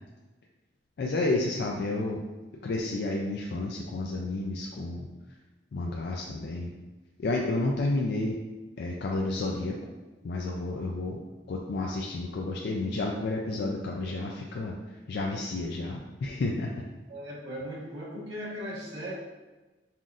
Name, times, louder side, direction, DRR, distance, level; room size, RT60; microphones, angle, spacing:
voice 1, 1.0-2.2 2.6-5.1 5.7-6.7 7.2-8.4 8.8-9.8 10.2-11.2 11.5-16.8, left 2 dB, 65° left, -1 dB, 0.4 m, -31 dB
voice 2, 17.1-19.1, equal, 80° right, -7 dB, 1.3 m, -38 dB
5.6 x 2.4 x 2.5 m, 1.2 s
head